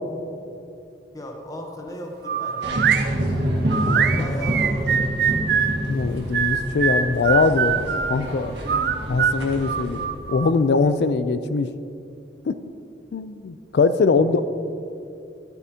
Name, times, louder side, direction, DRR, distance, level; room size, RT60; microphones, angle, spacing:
voice 1, 1.1-2.8 3.9-5.0 14.1-14.4, equal, 20° left, 1 dB, 0.8 m, -36 dB
sound 1, 2.2-3.1 3.7-5.8 6.3-8.2 8.7-10.5, right 7 dB, 60° right, 0.4 m, -23 dB
sound 2, 2.6-10.1, right 1 dB, 80° right, 1.6 m, -27 dB
voice 2, 3.8-4.2 5.9-8.5 9.1-11.7 12.5-12.6 13.1-14.4, left 4 dB, 65° left, 12 dB, 0.4 m, -22 dB
12.0 x 9.2 x 2.8 m, 2.6 s
head